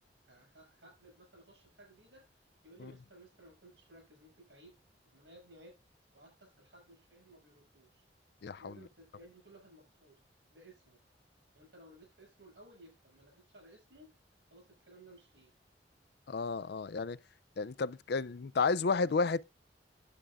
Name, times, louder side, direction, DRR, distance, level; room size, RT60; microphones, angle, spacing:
voice 1, 0.2-2.4 2.6-4.8 5.0-5.8 6.1-8.0 8.6-10.2 10.5-11.0 11.5-14.1 14.5-15.5, right 1 dB, 80° right, 6.1 m, -58 dB
voice 2, 8.4-8.7 16.3-17.2 17.6-19.4, left 4 dB, 60° left, 0.5 m, -32 dB
10.0 x 8.3 x 3.5 m
head